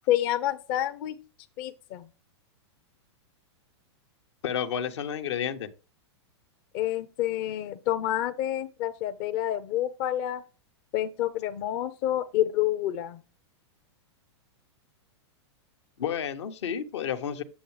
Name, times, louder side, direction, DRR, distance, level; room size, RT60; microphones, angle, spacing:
voice 1, 0.1-1.1 1.6-2.1 6.7-10.4 10.9-13.2, left 12 dB, 50° left, 0.7 m, -28 dB
voice 2, 4.4-5.7 16.0-17.4, left 8 dB, 75° left, 1.1 m, -31 dB
8.4 x 7.2 x 3.3 m
hypercardioid pair, 125°, 15 cm